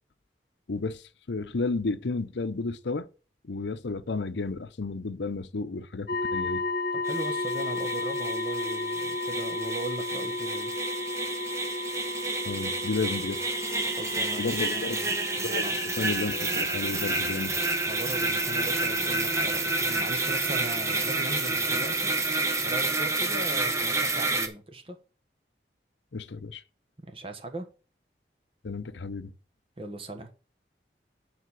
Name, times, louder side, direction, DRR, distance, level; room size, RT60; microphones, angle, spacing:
voice 1, 0.7-3.1 3.4-6.6 12.4-13.4 14.4-15.0 15.4-17.6 26.1-26.6 28.6-29.3, left 3 dB, 85° left, 0.7 m, -32 dB
sound 1, 6.1-23.0, left 2 dB, 60° left, 1.0 m, -35 dB
voice 2, 6.9-10.7 13.9-15.1 15.6-15.8 17.9-22.1 22.6-25.0 27.1-27.7 29.8-30.3, right 2 dB, 30° right, 1.3 m, -38 dB
sound 2, 7.0-24.5, right 2 dB, 15° right, 1.0 m, -29 dB
9.2 x 4.3 x 6.1 m
head